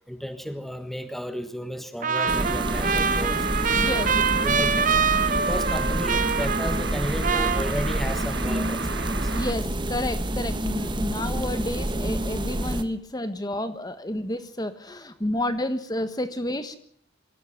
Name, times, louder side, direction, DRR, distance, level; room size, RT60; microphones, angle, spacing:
voice 1, 0.1-3.5 3.8-4.9 5.3-9.3, equal, ahead, 9 dB, 1.4 m, -34 dB
Trumpet, 2.0-7.0 7.2-8.2, right 6 dB, 40° right, 1.0 m, -25 dB
sound 1, 2.1-9.5, right 4 dB, 70° right, 1.9 m, -35 dB
sound 2, 2.3-12.8, right 1 dB, 25° right, 1.3 m, -28 dB
voice 2, 3.8-4.1 9.3-16.8, left 1 dB, 20° left, 11 dB, 1.4 m, -30 dB
24.0 x 16.0 x 7.4 m, 0.63 s
head